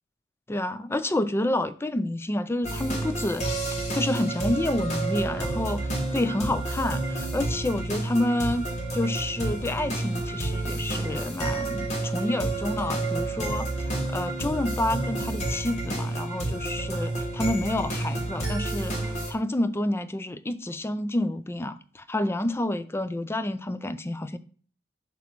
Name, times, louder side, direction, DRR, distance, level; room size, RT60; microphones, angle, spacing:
voice 1, 0.5-8.6 8.9-24.4, left 1 dB, 15° left, 0.3 m, -29 dB
sound 1, 2.6-19.3, right 2 dB, 40° left, 1.5 m, -30 dB
7.2 x 2.9 x 5.9 m
head